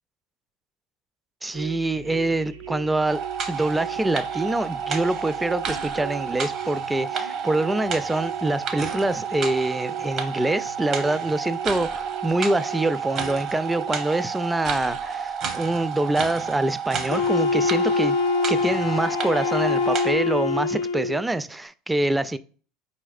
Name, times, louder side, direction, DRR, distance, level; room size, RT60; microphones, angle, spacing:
voice 1, 1.4-3.2 3.5-18.2 18.5-22.4, right 2 dB, 10° right, 0.3 m, -25 dB
sound 1, 1.5-14.1, right 10 dB, 90° right, 0.5 m, -40 dB
sound 2, 3.1-20.1, right 6 dB, 50° right, 0.8 m, -30 dB
Wind instrument woodwind instrument, 17.1-21.2, left 5 dB, 75° left, 0.4 m, -24 dB
4.6 x 4.2 x 2.4 m
hypercardioid pair, 85°, 0 cm